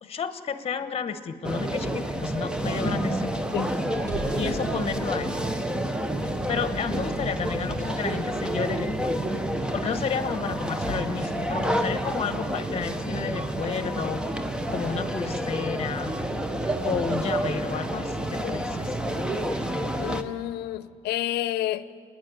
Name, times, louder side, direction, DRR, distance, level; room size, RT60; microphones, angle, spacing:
voice 1, 0.0-3.5 4.3-5.4 6.5-9.2 9.7-14.4 14.7-16.1 16.8-19.0, left 6 dB, 35° left, 1.2 m, -31 dB
sound 1, 1.4-20.2, right 1 dB, 5° right, 0.9 m, -29 dB
sound 2, 3.8-5.2 5.9-8.3 10.6-11.6, left 1 dB, 20° right, 4.6 m, -41 dB
voice 2, 20.0-21.9, left 13 dB, 85° left, 0.7 m, -30 dB
28.5 x 10.5 x 9.2 m
cardioid pair, 125°, 17 cm